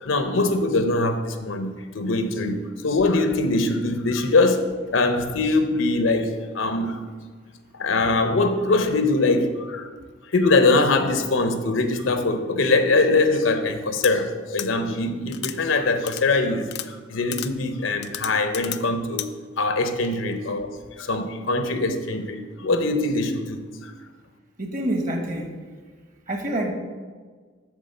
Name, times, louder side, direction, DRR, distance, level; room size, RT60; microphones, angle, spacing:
voice 1, 0.0-7.0 7.7-9.9 10.3-23.9, left 3 dB, 90° left, 8 dB, 0.8 m, -22 dB
sound 1, 14.0-14.1 14.6-14.7 15.3-15.6 16.1-16.2 16.7-16.9 17.3-17.5 18.0-18.8 19.2-19.3, left 13 dB, 60° left, 0.4 m, -31 dB
voice 2, 24.6-25.5 26.3-26.7, right 1 dB, 45° right, 3 dB, 1.2 m, -26 dB
8.2 x 3.6 x 6.6 m, 1.5 s
head